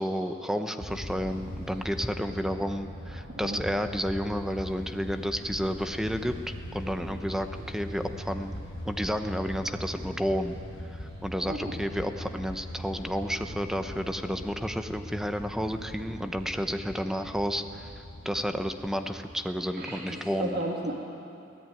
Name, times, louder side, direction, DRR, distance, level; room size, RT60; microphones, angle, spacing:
voice 1, 0.0-6.4 6.7-8.5 8.8-10.5 10.9-17.9 18.2-20.6, equal, 5° right, 7 dB, 0.9 m, -31 dB
sound 1, 0.8-19.8, equal, 65° left, 6.6 m, -41 dB
voice 2, 3.2-3.6 11.5-11.8 19.8-20.9, right 1 dB, 55° right, -1 dB, 2.0 m, -34 dB
23.0 x 17.5 x 9.1 m, 2.6 s
head